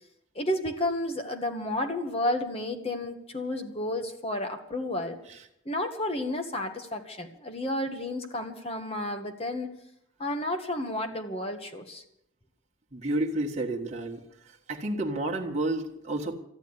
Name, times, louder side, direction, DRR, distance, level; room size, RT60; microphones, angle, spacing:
voice 1, 0.3-5.2 5.6-9.7 10.2-12.0, left 1 dB, 30° left, 5 dB, 1.4 m, -31 dB
voice 2, 12.9-14.2 14.7-16.4, right 2 dB, 35° right, -1 dB, 1.6 m, -30 dB
13.5 x 10.5 x 9.7 m, 0.76 s
head